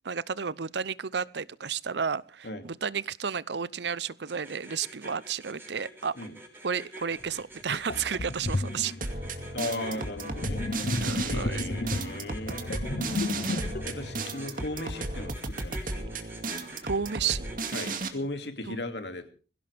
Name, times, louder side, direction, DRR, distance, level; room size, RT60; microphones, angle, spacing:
voice 1, 0.0-6.1 6.6-8.9 11.0-11.7 16.8-17.4 18.7-18.8, right 6 dB, 80° right, 0.7 m, -32 dB
sound 1, 4.3-17.9, right 1 dB, 10° right, 4.7 m, -46 dB
Sink (filling or washing), 7.2-7.3 7.9-15.2, left 2 dB, 55° left, 0.9 m, -33 dB
sound 2, 9.0-18.1, right 3 dB, 50° right, 2.3 m, -35 dB
voice 2, 9.5-10.6 11.2-12.7 13.8-16.2 17.7-19.3, left 2 dB, 80° left, 2.5 m, -37 dB
22.0 x 16.5 x 3.5 m
head